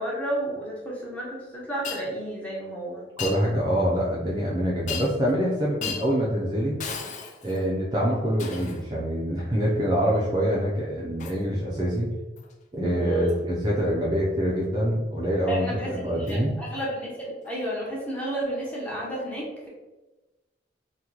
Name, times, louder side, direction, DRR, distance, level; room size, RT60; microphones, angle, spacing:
voice 1, 0.0-3.0 13.0-13.3 15.5-19.7, right 1 dB, 10° left, -5 dB, 0.8 m, -32 dB
Shatter, 1.8-2.0 3.2-3.4 4.9-5.3 5.8-6.1 6.8-7.7 8.4-8.8 11.2-11.4 12.4-12.5 13.3-13.4 16.3-16.4 17.4-17.6, left 6 dB, 40° left, 0.3 m, -35 dB
voice 2, 3.2-6.8 7.4-12.1 12.7-16.5, equal, 25° right, -5 dB, 0.5 m, -25 dB
2.9 x 2.3 x 3.7 m, 1.1 s
head